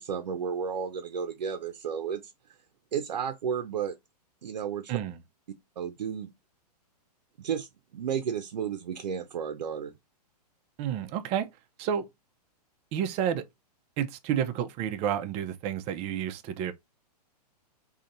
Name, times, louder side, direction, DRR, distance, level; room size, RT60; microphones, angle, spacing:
voice 1, 0.0-2.3 2.9-3.9 4.4-5.0 5.8-6.3 7.4-9.9, right 7 dB, 85° right, 0.7 m, -32 dB
voice 2, 10.8-11.5 11.8-12.1 12.9-13.5 14.0-16.7, right 9 dB, 30° right, 0.6 m, -30 dB
3.9 x 2.8 x 2.5 m
hypercardioid pair, 130°, 21 cm